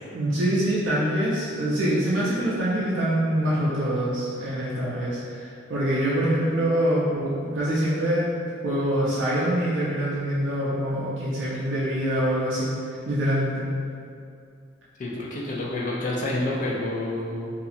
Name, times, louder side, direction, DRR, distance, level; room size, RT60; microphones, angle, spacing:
voice 1, 0.1-8.3 8.6-12.7 13.1-13.6, right 1 dB, 70° right, -8 dB, 0.4 m, -25 dB
voice 2, 15.0-17.5, left 2 dB, 40° left, -4 dB, 0.3 m, -28 dB
2.7 x 2.4 x 2.4 m, 2.4 s
head